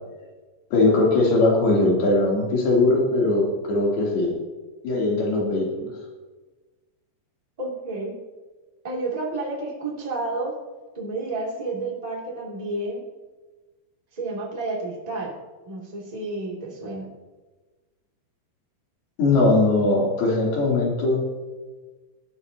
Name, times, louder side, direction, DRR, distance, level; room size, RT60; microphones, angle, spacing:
voice 1, 0.7-4.3 4.8-5.9 19.2-21.2, left 2 dB, 70° left, -3 dB, 5.1 m, -20 dB
voice 2, 7.6-8.1 8.8-10.5 10.9-13.0 14.1-15.4 15.6-17.1, right 2 dB, 10° right, -3 dB, 2.0 m, -30 dB
18.0 x 13.5 x 2.9 m, 1.3 s
omnidirectional pair, 4.7 m